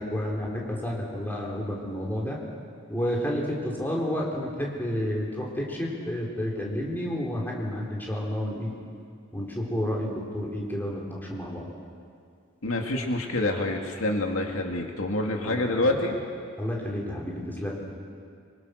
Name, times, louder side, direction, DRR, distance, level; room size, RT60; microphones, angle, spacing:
voice 1, 0.0-2.4 2.9-8.7 9.3-11.7 15.4-15.9 16.6-17.8, equal, 10° left, -3 dB, 3.8 m, -30 dB
voice 2, 12.6-16.2, left 2 dB, 85° left, 2 dB, 2.3 m, -27 dB
25.0 x 25.0 x 6.4 m, 2.3 s
head